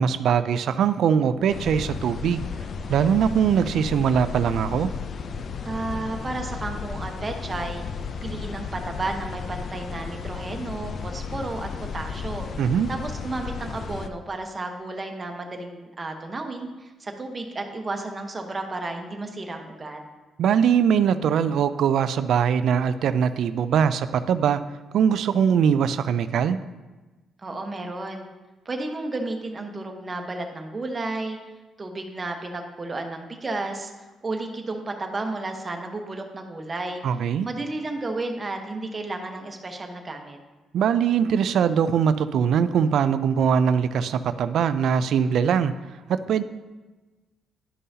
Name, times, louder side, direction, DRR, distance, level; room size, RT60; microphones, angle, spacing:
voice 1, 0.0-2.5 2.9-4.9 12.6-12.9 20.4-24.6 24.9-26.6 37.0-37.5 40.7-45.7 46.1-46.4, right 7 dB, 70° right, 12 dB, 0.3 m, -21 dB
sound 1, 1.5-14.1, left 5 dB, 55° left, 0.4 m, -34 dB
voice 2, 5.6-7.8 8.2-12.5 12.9-20.0 27.4-28.2 28.6-31.4 31.8-33.9 34.2-37.0 37.4-40.4, right 2 dB, 30° right, 3 dB, 1.0 m, -32 dB
11.0 x 5.5 x 2.8 m, 1.2 s
cardioid pair, 90°, 0 cm